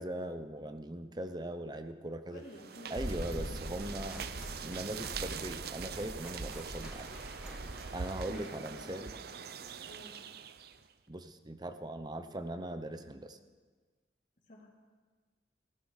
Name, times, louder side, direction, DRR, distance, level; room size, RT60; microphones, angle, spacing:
voice 1, 0.0-2.4 2.9-4.2 4.6-7.1 7.9-9.1 11.1-13.4, right 1 dB, 20° right, 9 dB, 0.7 m, -40 dB
voice 2, 2.3-4.1 6.4-6.6 8.3-9.0 9.9-10.1 14.5-14.7, equal, 45° left, -6 dB, 3.1 m, -52 dB
sound 1, 2.4-10.9, right 6 dB, 55° right, 0.6 m, -43 dB
sound 2, 3.0-7.8, equal, 40° right, 2.5 m, -43 dB
sound 3, 3.8-9.7, equal, 5° right, 2.0 m, -54 dB
16.5 x 15.5 x 4.9 m, 1.4 s
head